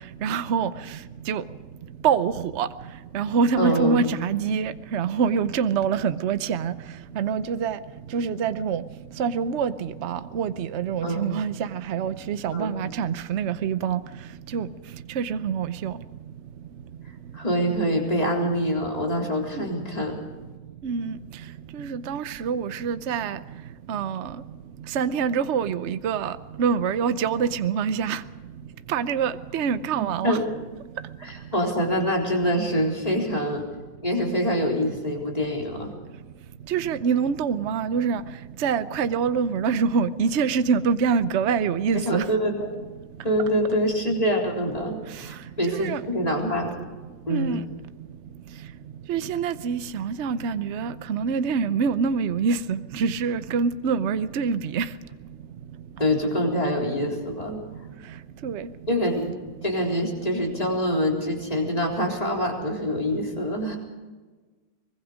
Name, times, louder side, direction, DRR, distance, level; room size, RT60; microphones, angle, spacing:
voice 1, 0.2-0.7 1.3-1.4 2.0-2.7 3.1-6.7 7.2-7.8 8.1-8.8 9.2-14.0 14.5-14.7 15.2-15.9 19.6-19.7 20.8-21.2 21.8-23.4 23.9-24.3 24.9-26.3 26.6-28.2 28.9-30.4 36.7-38.2 38.6-42.2 45.7-46.0 47.3-47.6 49.1-54.9 58.4-58.7, right 6 dB, 55° right, 1.0 m, -25 dB
voice 2, 3.6-4.1 11.0-11.3 12.5-12.7 17.3-20.2 30.0-30.5 31.2-33.7 34.0-35.9 41.9-42.8 43.2-46.8 47.3-47.6 56.0-57.6 58.9-59.3 59.6-63.8, equal, 25° left, 4.0 m, -25 dB
23.5 x 21.5 x 5.1 m
omnidirectional pair, 1.6 m